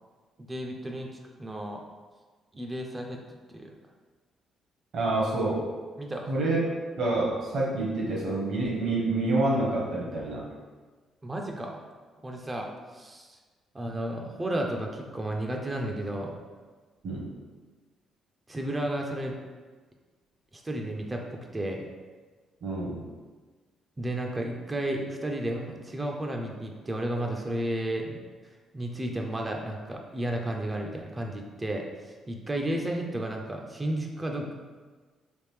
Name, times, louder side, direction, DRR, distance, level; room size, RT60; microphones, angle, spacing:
voice 1, 0.4-1.1 1.4-1.8 2.5-3.2 3.5-3.7 6.0-6.3 11.2-11.8 12.2-12.7 12.9-13.4 13.7-16.4 18.5-19.4 20.5-21.9 24.0-28.2 28.4-34.5, right 1 dB, 20° right, 1 dB, 0.4 m, -33 dB
voice 2, 4.9-5.7 6.3-6.6 7.0-10.4 17.0-17.3 22.6-23.0, right 2 dB, 60° right, -4 dB, 1.0 m, -27 dB
3.4 x 2.5 x 3.2 m, 1.4 s
cardioid pair, 90°, 0 cm